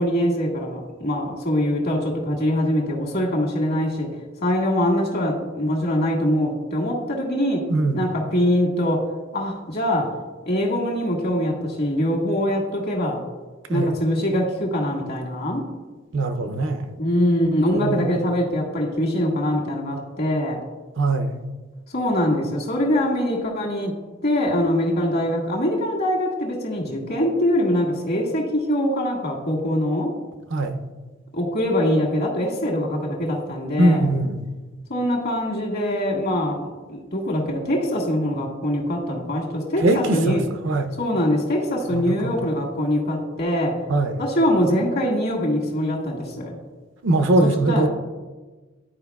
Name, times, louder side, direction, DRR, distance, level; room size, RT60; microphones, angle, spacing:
voice 1, 0.0-4.1 4.4-7.6 7.9-9.0 9.3-10.1 10.4-13.2 13.7-15.6 17.0-20.6 21.9-23.9 24.2-30.1 31.3-34.1 34.9-36.6 36.9-40.4 41.0-43.8 44.2-46.6 47.4-47.9, equal, 55° left, -1 dB, 1.6 m, -23 dB
voice 2, 7.7-8.0 13.7-13.9 16.1-16.9 17.7-18.3 21.0-21.4 30.5-30.8 33.8-34.5 39.8-40.4 40.6-40.9 41.9-42.3 43.9-44.2 47.0-47.9, right 2 dB, 70° right, 8 dB, 0.6 m, -21 dB
12.0 x 4.7 x 2.3 m, 1.3 s
head